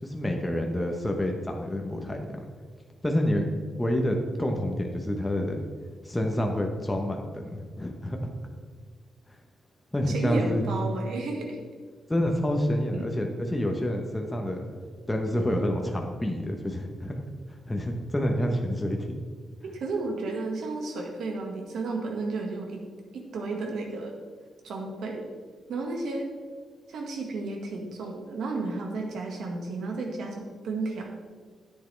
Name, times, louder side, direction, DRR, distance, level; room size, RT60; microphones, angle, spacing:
voice 1, 0.0-2.2 3.0-3.5 3.8-5.6 6.0-8.3 9.9-10.7 12.1-14.6 15.1-17.2 17.7-19.2, equal, 10° left, 2 dB, 0.9 m, -28 dB
voice 2, 10.1-11.6 12.9-13.0 19.6-22.8 23.1-24.1 24.6-25.3 25.7-26.3 26.9-31.1, right 3 dB, 80° right, 2 dB, 1.7 m, -32 dB
10.0 x 8.5 x 3.3 m, 1.5 s
cardioid pair, 105°, 0 cm